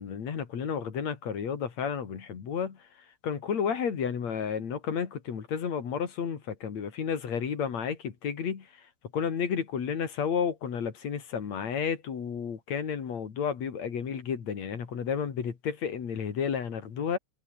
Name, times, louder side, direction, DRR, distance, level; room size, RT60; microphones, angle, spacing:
voice 1, 0.0-2.8 3.2-8.7 9.1-17.2, left 7 dB, 65° left, 3.9 m, -32 dB
omnidirectional pair, 3.4 m